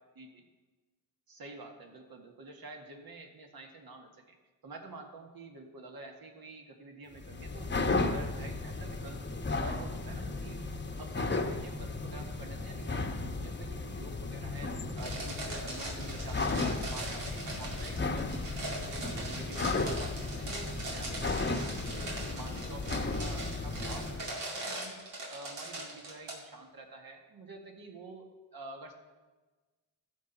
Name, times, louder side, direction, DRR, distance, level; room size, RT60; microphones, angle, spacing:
voice 1, 1.3-4.4 4.6-9.2 9.5-10.6 11.0-18.5 18.8-25.0 25.3-28.3 28.5-28.9, right 2 dB, 60° right, 2 dB, 1.8 m, -48 dB
sound 1, 7.1-24.3, left 3 dB, 25° left, 1.0 m, -35 dB
sound 2, 15.0-26.3, right 2 dB, 90° right, 2.4 m, -41 dB
14.5 x 5.8 x 4.0 m, 1.3 s
cardioid pair, 60°, 42 cm